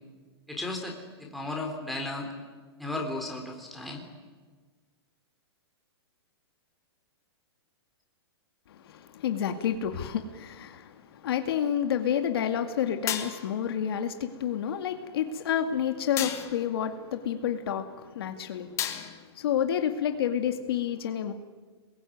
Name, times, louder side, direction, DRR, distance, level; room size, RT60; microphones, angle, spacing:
voice 1, 0.5-2.3 2.8-4.1, left 2 dB, ahead, -1 dB, 3.9 m, -35 dB
voice 2, 8.7-18.9 19.3-21.3, left 9 dB, 60° left, 6 dB, 2.2 m, -29 dB
sound 1, 13.1-13.7 16.2-16.7 18.8-19.4, left 10 dB, 20° left, 2.1 m, -33 dB
28.0 x 21.5 x 9.4 m, 1.4 s
hypercardioid pair, 160°, 14 cm